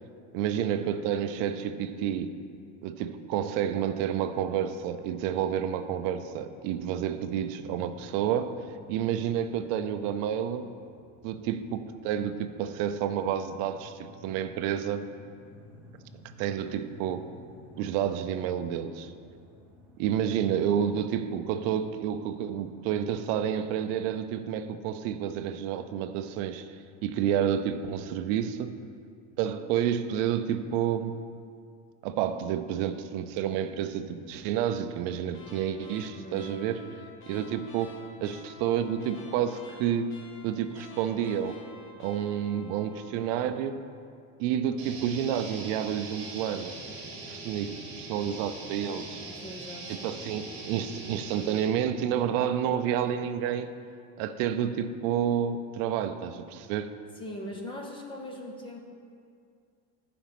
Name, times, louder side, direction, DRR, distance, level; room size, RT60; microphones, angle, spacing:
voice 1, 0.3-2.4 2.8-8.5 8.9-10.7 11.2-15.1 16.4-17.3 17.8-19.1 20.0-26.7 27.0-28.7 29.4-31.2 32.0-36.9 37.3-40.1 40.4-41.5 42.0-43.8 44.4-46.7 47.3-49.2 50.0-53.7 54.2-56.9, right 9 dB, 50° right, 10 dB, 0.5 m, -29 dB
sound 1, 4.5-24.1, equal, 5° right, 0.8 m, -55 dB
sound 2, 35.3-43.6, left 4 dB, 35° left, 0.8 m, -50 dB
voice 2, 36.1-36.6 49.3-50.1 56.6-56.7 57.2-58.8, left 1 dB, 15° left, 1 dB, 0.4 m, -41 dB
sound 3, 44.8-51.6, right 3 dB, 30° right, 2.0 m, -41 dB
10.0 x 5.1 x 5.9 m, 2.3 s
cardioid pair, 180°, 38 cm